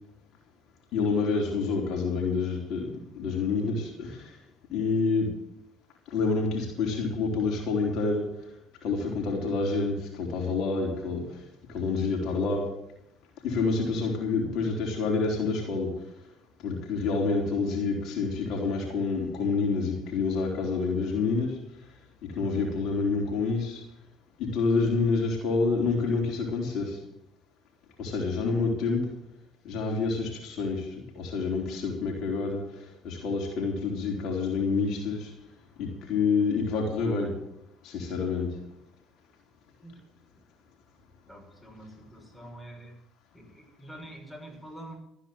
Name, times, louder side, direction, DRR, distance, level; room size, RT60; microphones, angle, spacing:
voice 1, 0.9-4.2 4.7-5.3 6.1-8.3 8.8-11.2 11.7-12.6 13.4-15.9 16.6-21.6 22.3-23.8 24.4-27.0 28.0-29.1 29.6-32.6 33.0-35.3 35.8-37.3 37.8-38.5, left 4 dB, 65° left, 0 dB, 4.0 m, -28 dB
voice 2, 41.3-43.0 43.3-45.0, right 1 dB, 5° left, 0 dB, 6.7 m, -46 dB
14.0 x 9.7 x 7.9 m, 0.82 s
hypercardioid pair, 70°, 0 cm